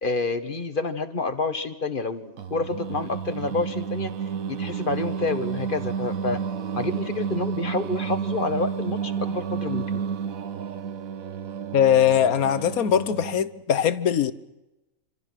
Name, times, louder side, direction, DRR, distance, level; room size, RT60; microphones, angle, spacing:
voice 1, 0.0-4.1 4.5-6.4 6.7-9.8, left 3 dB, 35° left, 1.7 m, -28 dB
Singing, 2.4-13.5, right 7 dB, 70° right, 1.5 m, -31 dB
voice 2, 11.7-14.3, left 9 dB, 80° left, 1.5 m, -21 dB
27.5 x 26.5 x 6.3 m
omnidirectional pair, 1.5 m